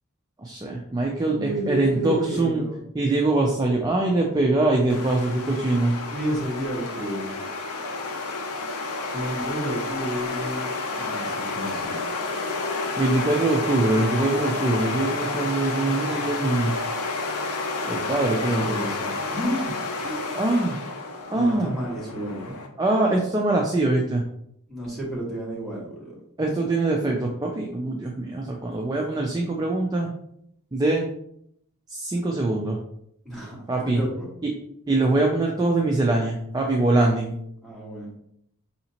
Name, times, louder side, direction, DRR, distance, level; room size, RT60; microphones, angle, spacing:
voice 1, 0.4-2.6 2.9-6.0 13.0-16.7 17.9-18.7 20.3-20.8 21.3-21.7 22.8-24.2 26.4-30.1 30.7-31.1 31.9-32.8 33.7-34.0 34.4-34.5 34.9-37.3, right 2 dB, 15° right, 0 dB, 0.3 m, -23 dB
voice 2, 1.2-2.8 6.1-7.4 9.1-10.7 11.0-12.0 18.3-20.3 21.3-22.5 24.7-26.1 33.2-34.3 37.6-38.1, equal, ahead, -8 dB, 1.5 m, -31 dB
sound 1, 4.9-22.7, left 3 dB, 75° left, 0.6 m, -30 dB
4.9 x 2.8 x 2.8 m, 0.73 s
head